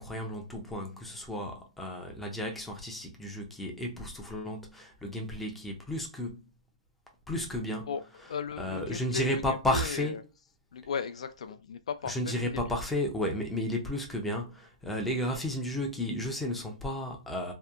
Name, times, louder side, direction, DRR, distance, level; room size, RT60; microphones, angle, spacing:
voice 1, 0.0-6.4 7.3-7.9 8.6-10.2 12.0-17.5, left 1 dB, 5° left, 0.4 m, -33 dB
voice 2, 7.9-10.2 10.7-12.7, left 6 dB, 70° left, 0.4 m, -37 dB
2.7 x 2.1 x 2.3 m
hypercardioid pair, 165°, 4 cm